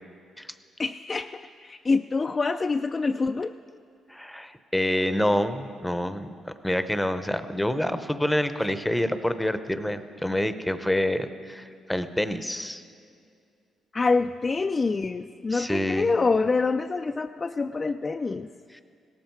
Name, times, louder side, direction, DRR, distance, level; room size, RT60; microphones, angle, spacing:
voice 1, 0.8-3.6 13.9-18.5, left 4 dB, 30° left, 6 dB, 0.3 m, -26 dB
voice 2, 4.1-12.8 15.5-16.1, left 1 dB, 5° left, 10 dB, 0.7 m, -27 dB
17.0 x 13.0 x 4.6 m, 2.3 s
cardioid pair, 90°, 0 cm